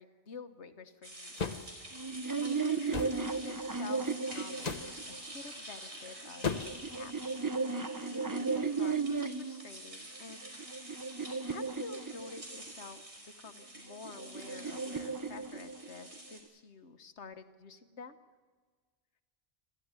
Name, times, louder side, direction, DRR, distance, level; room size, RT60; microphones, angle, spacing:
voice 1, 0.0-1.3 1.7-7.5 8.1-10.5 11.4-18.2, left 4 dB, 85° left, 9 dB, 1.6 m, -50 dB
sound 1, 1.0-16.4, right 1 dB, 80° right, 5.5 m, -48 dB
sound 2, 1.4-1.7 2.9-3.2 4.6-4.9 6.4-6.9, left 5 dB, 40° left, 1.1 m, -35 dB
sound 3, 1.9-5.3 6.2-9.6 10.3-12.7 13.8-16.2, right 4 dB, 20° right, 0.7 m, -35 dB
27.0 x 14.5 x 9.7 m, 1.5 s
omnidirectional pair, 1.1 m